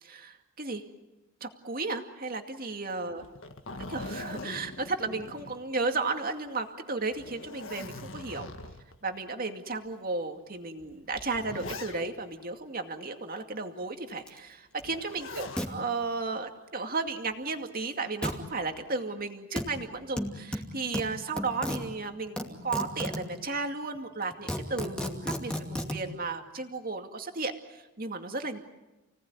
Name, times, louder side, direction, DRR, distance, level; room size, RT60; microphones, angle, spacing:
voice 1, 0.0-0.8 1.4-3.2 3.9-8.5 9.0-28.6, right 3 dB, 40° right, 5 dB, 2.3 m, -34 dB
Zipper (clothing), 3.2-6.1 6.5-6.6 7.1-9.0 9.7-9.8 10.8-12.3 14.8-15.7 17.1-17.5, left 2 dB, 60° left, 1.9 m, -42 dB
sound 1, 14.3-14.4 14.8-14.9 15.6-15.7 18.2-18.4 19.6-19.7 20.2-21.8 22.4-23.3 23.9-24.0 24.3-26.0, equal, 5° left, 2.4 m, -33 dB
30.0 x 18.5 x 9.6 m, 1.1 s
head